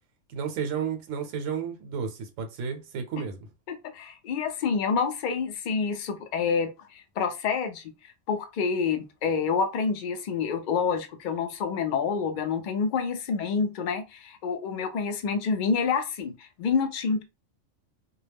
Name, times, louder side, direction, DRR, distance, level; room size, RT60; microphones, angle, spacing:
voice 1, 0.3-3.4, right 6 dB, 85° right, 1.0 m, -32 dB
voice 2, 3.7-7.8 8.3-17.2, left 5 dB, 65° left, 0.4 m, -28 dB
2.2 x 2.0 x 3.3 m
omnidirectional pair, 1.3 m